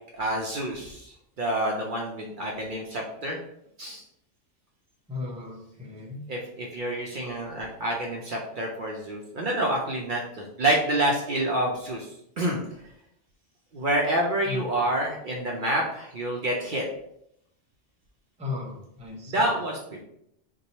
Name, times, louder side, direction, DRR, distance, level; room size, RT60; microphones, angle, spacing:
voice 1, 0.1-3.4 3.8-4.0 6.3-12.6 13.7-16.8 19.2-20.0, right 1 dB, 55° right, -1 dB, 0.6 m, -28 dB
voice 2, 5.1-6.2 14.5-14.6 18.4-19.5, left 4 dB, 10° right, -3 dB, 0.5 m, -36 dB
2.9 x 2.2 x 4.0 m, 0.76 s
omnidirectional pair, 1.2 m